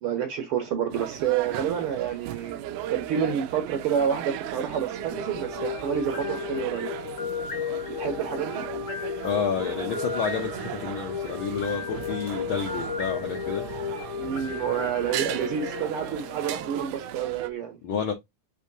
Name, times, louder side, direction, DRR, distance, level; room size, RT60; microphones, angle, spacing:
voice 1, 0.0-2.6 2.9-6.9 7.9-8.6 14.2-17.8, right 8 dB, 65° right, 1.5 m, -28 dB
sound 1, 0.9-17.5, right 11 dB, 85° right, 1.4 m, -37 dB
sound 2, 4.9-17.0, left 7 dB, 50° left, 0.9 m, -34 dB
voice 2, 9.2-13.6 17.8-18.1, left 6 dB, 70° left, 1.2 m, -30 dB
6.9 x 2.8 x 2.6 m
omnidirectional pair, 3.3 m